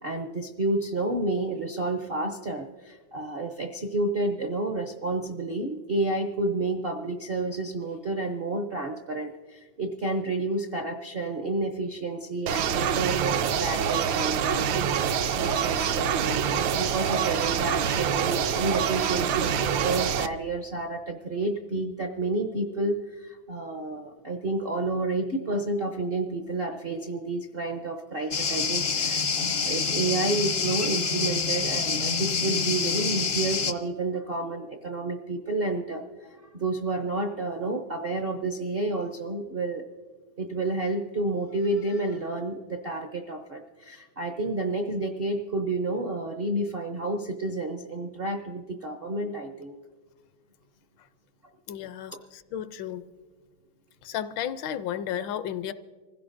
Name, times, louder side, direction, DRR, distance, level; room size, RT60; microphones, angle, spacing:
voice 1, 0.0-36.0 36.6-39.9 40.4-49.7, right 2 dB, 60° right, 4 dB, 0.6 m, -30 dB
sound 1, 12.5-20.3, right 8 dB, 80° right, 1.4 m, -26 dB
sound 2, 28.3-33.7, left 5 dB, 55° left, 0.7 m, -27 dB
voice 2, 51.7-53.1 54.0-55.7, left 10 dB, 75° left, 13 dB, 1.3 m, -33 dB
26.0 x 16.0 x 2.6 m, 1.5 s
omnidirectional pair, 2.1 m